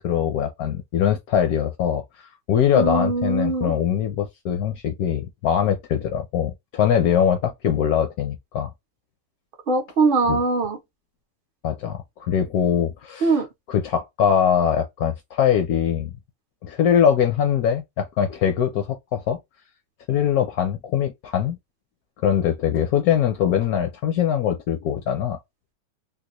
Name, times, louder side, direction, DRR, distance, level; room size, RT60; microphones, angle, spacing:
voice 1, 0.0-8.7 10.3-10.4 11.6-13.4 13.7-16.1 16.6-19.4 20.1-21.6 22.2-25.4, left 9 dB, 70° left, 0.9 m, -22 dB
voice 2, 2.7-3.7 9.7-10.8 13.2-13.5, right 3 dB, 50° right, 0.6 m, -21 dB
3.7 x 2.3 x 2.9 m
omnidirectional pair, 2.0 m